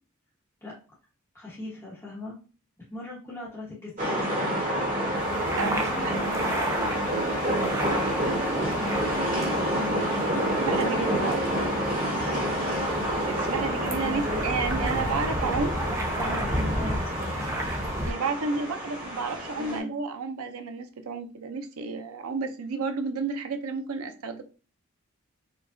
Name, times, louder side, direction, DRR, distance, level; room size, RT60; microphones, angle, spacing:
voice 1, 1.3-2.4 2.9-5.1 5.5-6.3 8.3-9.0 9.7-10.0 10.4-11.4 14.0-14.4 16.2-17.4 19.6-19.9, left 2 dB, 10° left, 1.1 m, -39 dB
sound 1, 4.0-19.8, equal, 40° right, 1.4 m, -28 dB
sound 2, 5.1-18.1, right 1 dB, 15° right, 0.4 m, -33 dB
voice 2, 5.6-6.7 10.6-11.5 13.3-15.8 18.0-24.4, right 4 dB, 85° right, 0.6 m, -31 dB
4.5 x 2.3 x 2.6 m
head